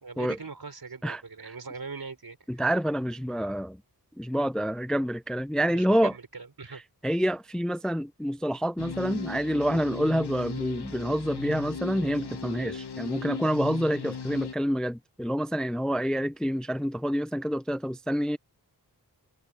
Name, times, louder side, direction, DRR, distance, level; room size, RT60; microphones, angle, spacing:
voice 1, 0.0-2.6 5.7-6.8, right 4 dB, 65° right, 4.7 m, -41 dB
voice 2, 1.0-1.5 2.5-3.8 4.2-6.1 6.7-18.4, equal, ahead, 0.5 m, -28 dB
sound 1, 8.8-14.5, left 6 dB, 80° left, 1.3 m, -37 dB
cardioid pair, 50°, 39 cm